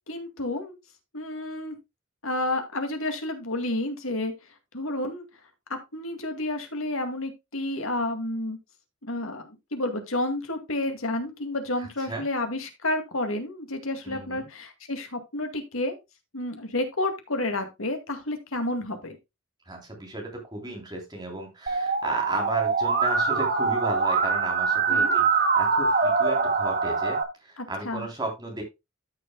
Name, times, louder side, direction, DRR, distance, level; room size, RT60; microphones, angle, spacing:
voice 1, 0.1-0.7 1.1-1.8 2.2-4.3 4.7-5.3 5.7-8.6 9.0-16.0 16.3-19.2 24.9-25.2 27.6-28.1, left 1 dB, 70° left, 6 dB, 2.2 m, -30 dB
voice 2, 11.8-12.2 14.0-14.4 19.7-25.3 25.6-28.6, right 2 dB, 20° right, 1 dB, 3.3 m, -34 dB
Musical instrument, 21.7-27.2, right 4 dB, 40° right, 1.6 m, -23 dB
13.5 x 6.7 x 2.2 m, 0.23 s
head